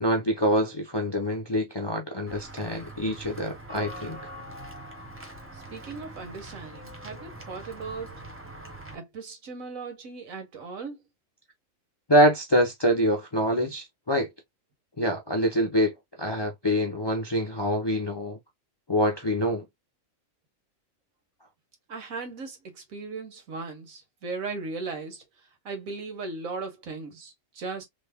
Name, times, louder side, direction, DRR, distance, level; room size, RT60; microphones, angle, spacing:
voice 1, 0.0-4.3 12.1-14.3 15.0-18.4 18.9-19.6, equal, 35° left, 0.4 m, -25 dB
Walk footsteps / Bell, 2.3-9.0, right 1 dB, 15° right, 0.6 m, -43 dB
voice 2, 5.5-8.2 8.9-11.0 21.9-27.9, right 4 dB, 90° right, 1.5 m, -37 dB
3.3 x 2.1 x 3.4 m
omnidirectional pair, 1.4 m